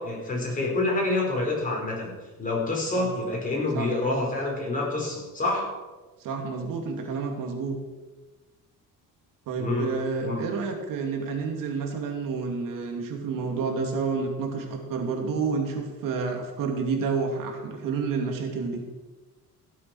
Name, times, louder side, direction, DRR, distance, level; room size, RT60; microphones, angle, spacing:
voice 1, 0.0-2.1 2.4-5.7 9.6-9.9 10.2-10.4, left 2 dB, 25° left, -2 dB, 5.2 m, -27 dB
voice 2, 6.2-7.8 9.5-18.8, right 4 dB, 75° right, 2 dB, 2.7 m, -29 dB
16.0 x 7.7 x 6.4 m, 1.2 s
cardioid pair, 125°, 33 cm